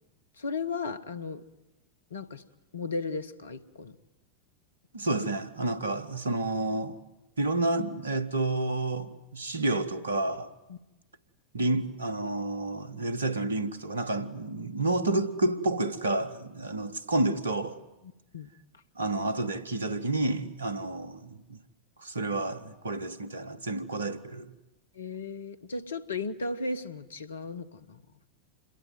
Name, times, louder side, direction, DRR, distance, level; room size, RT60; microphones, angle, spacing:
voice 1, 0.4-1.4 2.1-2.4 2.7-3.9 10.7-10.8 18.3-18.5 24.9-28.0, left 3 dB, 70° left, 1.3 m, -35 dB
voice 2, 4.9-7.0 7.4-10.5 11.5-17.8 18.9-21.6 22.0-24.5, right 2 dB, 70° right, 1.5 m, -30 dB
27.5 x 21.5 x 9.4 m
figure-of-eight pair, 90°, 0 cm